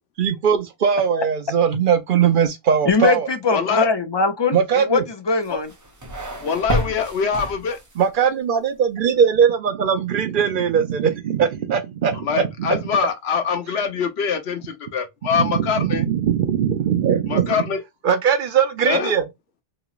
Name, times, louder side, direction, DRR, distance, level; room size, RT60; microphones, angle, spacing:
voice 1, 0.2-3.3 4.5-5.0 8.0-12.8 13.7-13.8 15.3-17.6 18.0-19.2, right 7 dB, 60° right, 0.7 m, -20 dB
voice 2, 2.9-5.7, left 4 dB, 40° left, 0.4 m, -21 dB
voice 3, 3.5-3.9 5.5-5.6 6.4-7.8 12.2-16.0 17.3-17.8 18.9-19.1, left 6 dB, 80° left, 1.0 m, -23 dB
sound 1, 5.4-8.1, equal, 20° right, 0.7 m, -29 dB
3.0 x 2.8 x 2.3 m
omnidirectional pair, 1.1 m